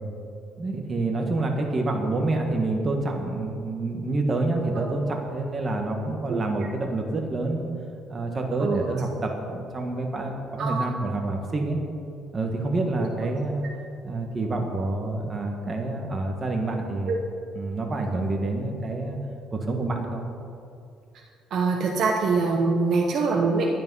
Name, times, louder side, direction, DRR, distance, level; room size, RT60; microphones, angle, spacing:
voice 1, 0.6-7.7 8.1-11.8 12.3-13.7 14.0-17.2 17.5-19.2 19.5-20.3, right 2 dB, 25° right, 2 dB, 1.4 m, -27 dB
voice 2, 21.5-23.7, right 4 dB, 55° right, 0 dB, 1.1 m, -24 dB
10.5 x 10.0 x 5.5 m, 2.5 s
cardioid pair, 135°, 0 cm